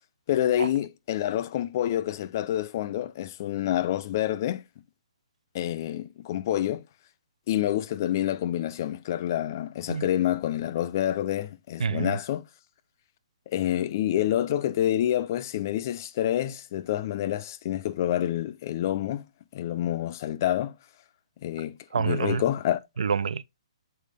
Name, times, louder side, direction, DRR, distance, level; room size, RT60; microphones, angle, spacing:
voice 1, 0.3-4.6 5.5-6.8 7.5-12.4 13.5-19.2 19.5-20.7 21.4-22.8, left 12 dB, 30° left, 0.4 m, -27 dB
voice 2, 11.8-12.2 21.9-22.4 23.0-23.4, right 6 dB, 80° right, 0.5 m, -27 dB
6.6 x 4.5 x 3.4 m
hypercardioid pair, 170°, 3 cm